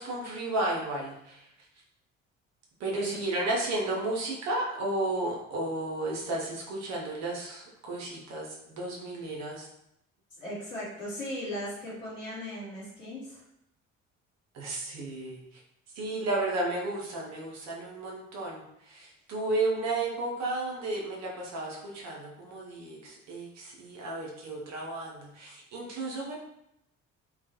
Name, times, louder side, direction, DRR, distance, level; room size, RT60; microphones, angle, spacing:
voice 1, 0.0-1.5 2.8-9.7 14.5-15.6 15.9-26.3, right 2 dB, 45° right, -2 dB, 0.8 m, -33 dB
voice 2, 10.4-13.4, equal, 80° left, -8 dB, 1.1 m, -37 dB
2.3 x 2.3 x 2.7 m, 0.79 s
figure-of-eight pair, 50°, 38 cm